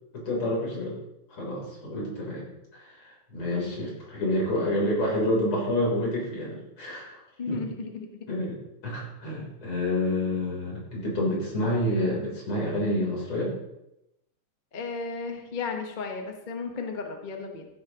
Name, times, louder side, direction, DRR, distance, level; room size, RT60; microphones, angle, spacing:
voice 1, 0.1-1.0 1.3-2.4 2.7-7.2 7.5-7.6 8.3-8.6 8.8-13.5, left 1 dB, 85° left, -3 dB, 4.4 m, -28 dB
voice 2, 1.9-2.2 3.5-3.7 7.4-8.2 8.8-8.9 14.7-17.7, left 4 dB, 30° left, 3 dB, 1.0 m, -35 dB
15.0 x 9.5 x 3.0 m, 0.88 s
omnidirectional pair, 2.3 m